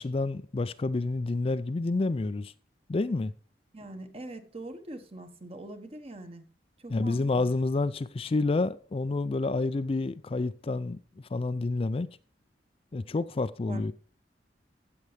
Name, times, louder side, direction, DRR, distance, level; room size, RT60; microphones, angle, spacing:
voice 1, 0.0-2.5 2.9-3.3 6.9-12.1 12.9-13.9, left 3 dB, 30° left, 0.4 m, -29 dB
voice 2, 3.7-6.4 6.8-7.5 13.7-13.9, right 1 dB, 35° right, 1.2 m, -43 dB
15.5 x 6.8 x 3.2 m
head